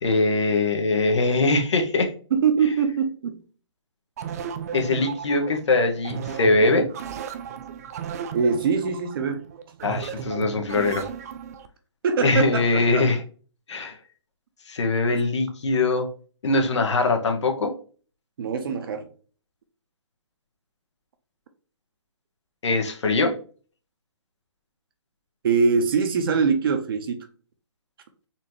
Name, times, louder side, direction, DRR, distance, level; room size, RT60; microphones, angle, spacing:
voice 1, 0.0-2.1 4.7-6.9 9.8-11.1 12.2-13.2 13.7-14.0 14.7-16.1 16.4-17.7 22.6-23.3, left 3 dB, 65° left, 1.1 m, -22 dB
voice 2, 2.3-3.4 8.3-9.5 12.0-13.1 18.4-19.1 25.4-27.3, right 5 dB, 50° right, 0.8 m, -23 dB
sound 1, 4.2-11.7, right 7 dB, 30° right, 0.3 m, -35 dB
4.2 x 2.7 x 3.1 m
hypercardioid pair, 150°, 16 cm